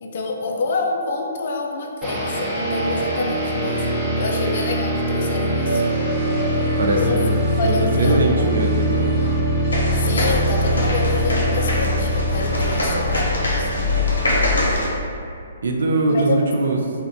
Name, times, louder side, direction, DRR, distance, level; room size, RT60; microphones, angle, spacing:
voice 1, 0.0-3.8 4.2-5.9 7.0-7.2 7.6-8.5 9.9-13.9 16.1-16.4, left 3 dB, 55° left, 1 dB, 0.3 m, -27 dB
sound 1, 2.0-14.2, equal, 25° right, 0.6 m, -23 dB
sound 2, 5.6-14.7, right 1 dB, 30° left, 0.7 m, -31 dB
voice 2, 6.8-7.3 7.6-9.1 15.6-16.8, right 2 dB, 75° right, 1 dB, 0.3 m, -21 dB
sound 3, 9.7-14.9, left 2 dB, 90° left, 0.7 m, -23 dB
2.6 x 2.1 x 2.6 m, 2.4 s
hypercardioid pair, 140°, 0 cm